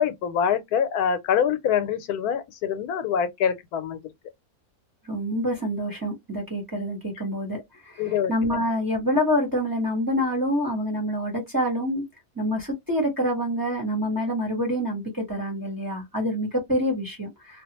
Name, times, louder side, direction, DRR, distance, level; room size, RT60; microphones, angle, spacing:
voice 1, 0.0-4.0 8.0-8.6, left 8 dB, 85° left, 1.1 m, -25 dB
voice 2, 5.0-12.1 12.3-17.6, equal, 15° right, 0.9 m, -27 dB
2.5 x 2.3 x 2.8 m
omnidirectional pair, 1.6 m